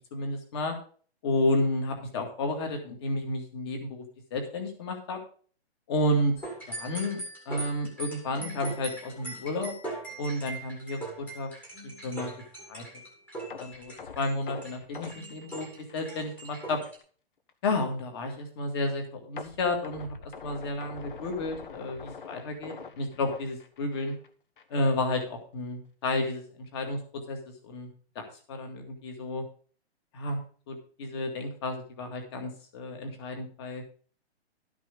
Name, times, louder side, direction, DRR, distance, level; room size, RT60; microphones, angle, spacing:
voice 1, 0.1-0.8 1.2-4.0 4.3-5.2 5.9-6.3 6.7-9.7 10.2-11.5 12.0-12.3 12.7-12.8 13.6-15.7 15.9-16.8 17.6-24.1 24.7-26.4 26.7-27.0 27.3-27.4 27.6-27.9 28.2-29.4 30.1-30.4 30.7-33.9, left 2 dB, 25° left, 4 dB, 2.0 m, -31 dB
sound 1, 6.4-17.0, right 2 dB, 5° left, 1.7 m, -41 dB
sound 2, 13.5-16.5 16.9-17.0 17.5-17.6 19.4-24.3 24.6-24.8 25.2-25.3, left 5 dB, 50° left, 1.2 m, -44 dB
12.5 x 6.1 x 5.2 m, 0.43 s
hypercardioid pair, 175°, 33 cm